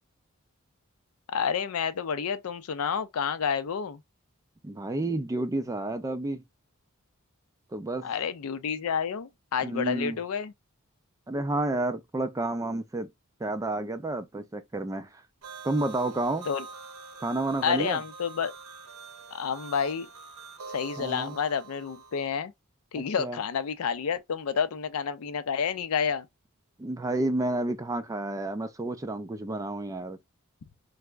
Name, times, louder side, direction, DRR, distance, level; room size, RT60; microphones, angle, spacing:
voice 1, 1.3-4.0 8.0-10.5 16.5-16.6 17.6-18.5 19.3-20.1 20.7-22.5 22.9-26.3, left 6 dB, 75° left, 0.4 m, -29 dB
voice 2, 4.6-6.4 7.7-8.1 9.6-10.2 11.3-13.1 13.4-15.2 15.6-16.5 17.2-18.0 21.0-21.4 23.0-23.4 26.8-30.2, right 2 dB, 15° right, 0.3 m, -30 dB
sound 1, 15.4-22.3, right 4 dB, 80° right, 0.6 m, -45 dB
3.4 x 2.0 x 3.2 m
head